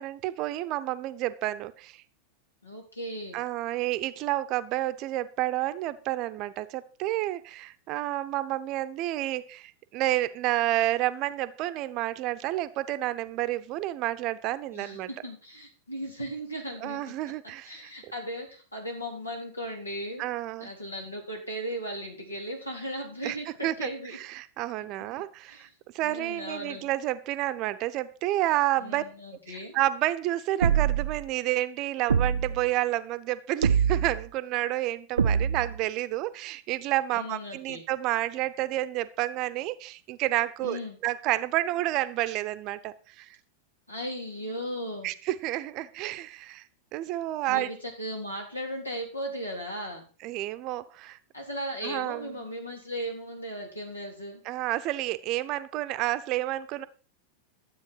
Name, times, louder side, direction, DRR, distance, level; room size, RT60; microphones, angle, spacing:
voice 1, 0.0-2.0 3.3-15.1 16.8-17.9 20.2-20.7 23.2-23.4 23.6-23.9 24.3-25.7 25.9-29.0 29.5-43.4 45.0-46.6 46.9-47.7 50.2-51.2 51.8-52.3 54.5-56.8, right 15 dB, 40° right, 13 dB, 0.8 m, -30 dB
voice 2, 2.6-3.4 14.7-17.0 17.6-20.2 20.6-24.2 25.5-25.7 26.0-26.9 28.8-29.8 37.1-37.8 40.6-41.0 43.9-45.1 47.5-50.0 51.3-54.4, equal, 80° left, 1 dB, 3.6 m, -37 dB
sound 1, 30.6-31.2 32.1-32.7 33.6-34.2 35.2-35.8, right 7 dB, 70° right, 0.5 m, -24 dB
12.5 x 7.9 x 4.6 m, 0.36 s
figure-of-eight pair, 90°, 0 cm